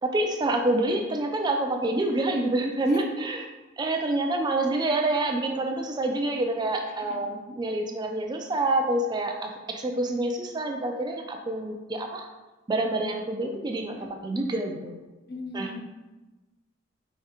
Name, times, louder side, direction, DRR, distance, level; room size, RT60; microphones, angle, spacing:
voice 1, 0.0-3.5 3.8-12.3 12.7-15.0 15.5-15.7, right 2 dB, 20° right, 3 dB, 0.3 m, -27 dB
voice 2, 6.9-7.3 14.0-14.1 15.3-15.8, left 2 dB, 55° left, 3 dB, 0.5 m, -39 dB
4.7 x 3.2 x 2.9 m, 1.1 s
head